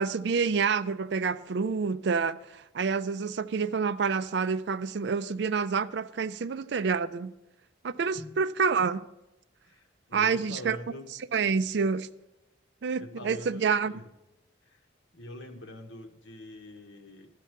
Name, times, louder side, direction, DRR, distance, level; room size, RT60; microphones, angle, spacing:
voice 1, 0.0-7.3 7.8-9.1 10.1-10.8 11.3-12.1 12.8-13.9, right 5 dB, 60° right, 0.4 m, -28 dB
voice 2, 9.6-11.1 13.0-14.1 14.6-14.8 15.1-17.3, left 1 dB, 80° left, 1.2 m, -44 dB
12.0 x 8.3 x 4.5 m
head